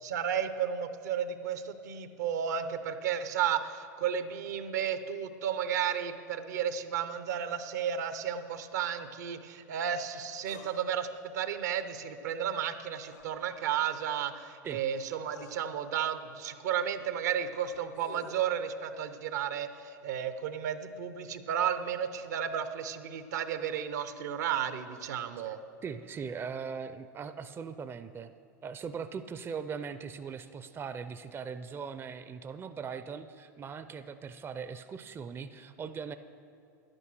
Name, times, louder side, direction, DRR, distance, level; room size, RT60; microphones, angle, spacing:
voice 1, 0.0-11.1 11.3-25.6, right 9 dB, 75° right, 10 dB, 0.8 m, -33 dB
sound 1, 10.5-10.7 13.0-13.3 14.6-14.7 15.3-15.6 17.6-18.4, left 5 dB, 85° left, 1.7 m, -49 dB
voice 2, 25.8-28.3 28.6-36.2, right 6 dB, 25° right, 11 dB, 0.5 m, -40 dB
11.0 x 9.0 x 6.2 m, 2.6 s
hypercardioid pair, 85°, 9 cm